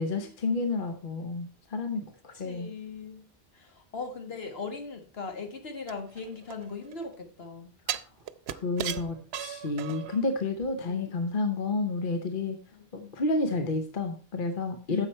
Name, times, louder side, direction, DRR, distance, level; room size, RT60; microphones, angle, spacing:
voice 1, 0.0-2.7 8.5-12.6 12.9-15.1, left 3 dB, 55° left, 7 dB, 1.1 m, -30 dB
voice 2, 2.4-3.3 3.5-7.7 10.8-11.1 12.9-13.1 14.9-15.1, left 4 dB, 75° left, 5 dB, 1.7 m, -39 dB
sound 1, 5.9-7.0 7.9-10.2 10.6-10.7, right 10 dB, 85° right, 0.9 m, -36 dB
9.9 x 7.0 x 4.3 m, 0.38 s
omnidirectional pair, 1.1 m